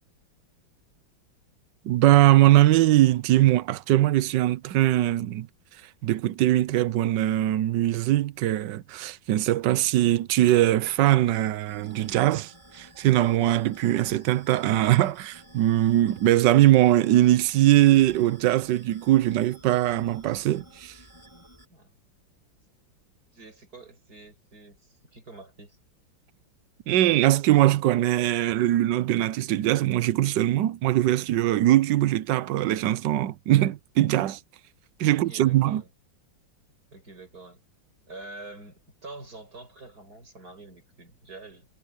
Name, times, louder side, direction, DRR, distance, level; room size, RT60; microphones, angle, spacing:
voice 1, 1.8-5.5 6.0-20.9 26.9-34.4 35.0-35.8, right 14 dB, 70° right, 1.4 m, -21 dB
sound 1, 11.7-21.7, right 1 dB, 15° left, 3.1 m, -53 dB
voice 2, 23.3-25.8 35.1-35.9 36.9-37.6 38.1-41.7, right 3 dB, 50° right, 6.7 m, -46 dB
omnidirectional pair, 2.1 m